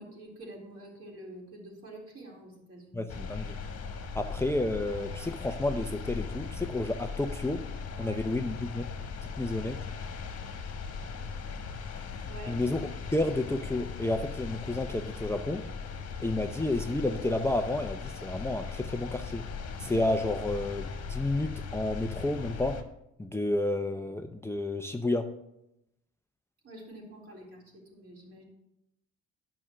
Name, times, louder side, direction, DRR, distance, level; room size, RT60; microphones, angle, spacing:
voice 1, 0.0-3.0 8.0-8.2 12.3-12.6 26.6-28.4, right 1 dB, 50° right, -2 dB, 4.0 m, -47 dB
voice 2, 2.9-3.6 4.1-7.6 8.0-8.8 9.4-9.8 12.5-15.6 16.2-19.4 19.8-22.8 23.2-25.3, left 2 dB, 10° left, 6 dB, 0.6 m, -31 dB
sound 1, 3.1-22.8, left 5 dB, 55° left, 1.5 m, -39 dB
9.9 x 6.1 x 6.3 m, 0.84 s
cardioid pair, 90°, 30 cm